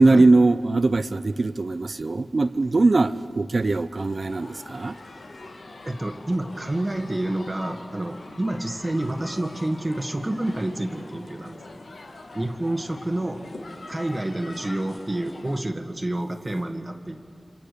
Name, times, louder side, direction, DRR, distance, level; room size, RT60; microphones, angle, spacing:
voice 1, 0.0-4.9, right 3 dB, 60° right, 0.6 m, -20 dB
sound 1, 3.9-15.6, left 2 dB, 85° left, 2.0 m, -43 dB
voice 2, 5.8-11.8 12.3-13.4 13.9-17.2, right 1 dB, 30° right, 1.6 m, -28 dB
28.0 x 26.0 x 6.8 m
wide cardioid pair, 60°, 0 cm